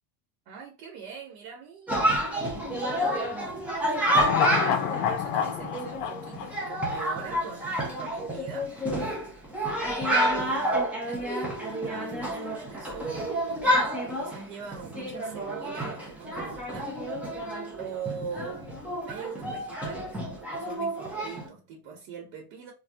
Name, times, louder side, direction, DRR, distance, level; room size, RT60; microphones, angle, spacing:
voice 1, 0.5-2.1 2.7-3.2 4.5-8.7 9.8-16.9 17.7-18.6 19.0-22.7, right 6 dB, 65° right, 1.1 m, -42 dB
Chatter, 1.9-21.5, equal, 5° right, 0.3 m, -29 dB
sound 1, 4.0-7.4 7.7-7.8, left 9 dB, 65° left, 0.6 m, -29 dB
2.6 x 2.3 x 3.4 m
supercardioid pair, 130°, 50 cm